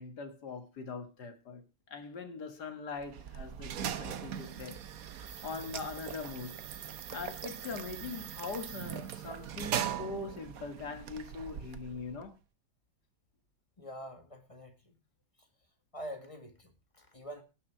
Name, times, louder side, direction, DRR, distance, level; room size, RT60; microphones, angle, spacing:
voice 1, 0.0-1.6 1.9-4.8 5.2-6.6 7.1-12.3, left 4 dB, 55° left, 2.3 m, -42 dB
sound 1, 3.0-12.3, right 9 dB, 55° right, 1.1 m, -40 dB
voice 2, 13.8-15.0 15.9-17.4, equal, 15° left, 1.8 m, -45 dB
18.0 x 6.3 x 4.5 m
omnidirectional pair, 2.2 m